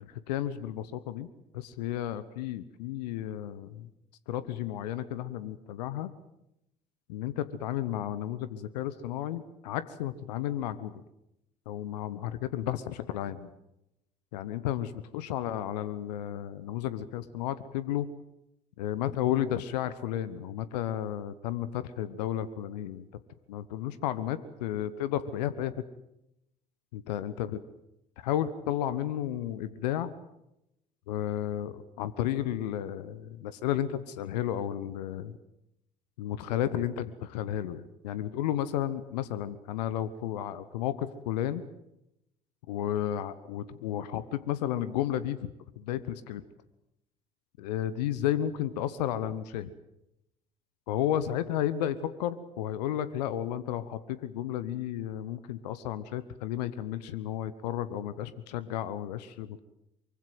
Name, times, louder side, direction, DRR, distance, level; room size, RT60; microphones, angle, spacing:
voice 1, 0.3-1.3 1.5-3.9 4.3-6.1 7.1-11.0 11.7-13.5 14.3-18.1 18.8-23.0 23.5-25.7 26.9-27.6 28.2-30.1 31.1-35.4 36.2-41.6 42.7-45.5 45.8-46.4 47.6-49.7 50.9-59.6, left 11 dB, 75° left, 15 dB, 1.1 m, -32 dB
24.0 x 23.5 x 7.9 m, 0.86 s
figure-of-eight pair, 55°, 21 cm